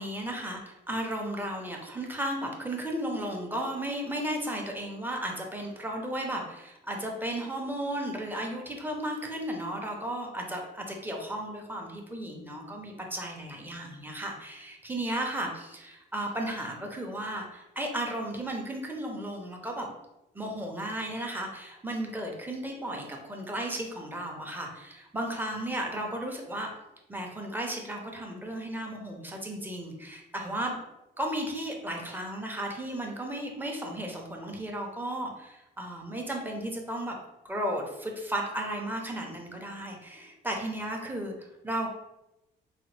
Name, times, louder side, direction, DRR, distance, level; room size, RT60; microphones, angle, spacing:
voice 1, 0.0-19.9 20.3-26.7 27.1-30.8 31.2-37.1 37.4-41.9, right 1 dB, 10° right, 1 dB, 0.7 m, -34 dB
4.0 x 2.2 x 3.1 m, 0.95 s
cardioid pair, 105°, 19 cm